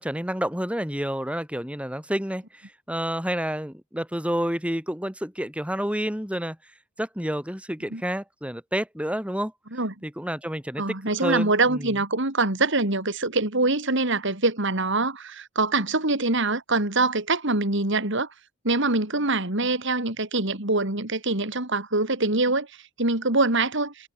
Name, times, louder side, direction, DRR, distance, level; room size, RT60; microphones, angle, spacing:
voice 1, 0.0-6.6 7.0-9.5 10.0-10.8 11.2-11.9, equal, 5° right, 7.2 m, -29 dB
voice 2, 10.8-18.3 18.6-24.1, right 2 dB, 65° right, 4.3 m, -24 dB
head